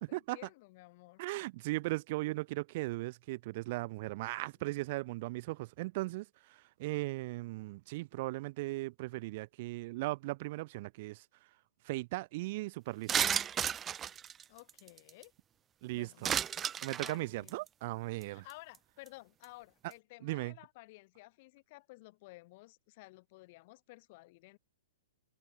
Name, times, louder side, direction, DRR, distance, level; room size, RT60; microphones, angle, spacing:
voice 1, 0.0-1.4 14.5-15.3 15.9-16.5 17.0-17.6 18.2-24.6, left 22 dB, 45° left, 6.5 m, -55 dB
voice 2, 1.2-11.2 11.8-13.3 15.8-16.3 16.8-18.4 20.2-20.5, right 20 dB, 50° right, 1.0 m, -38 dB
sound 1, 13.1-15.2 16.2-17.1 17.5-17.7 18.2-18.3 18.5-18.8 19.1-19.2, right 9 dB, 20° right, 0.6 m, -33 dB
hypercardioid pair, 130°, 0 cm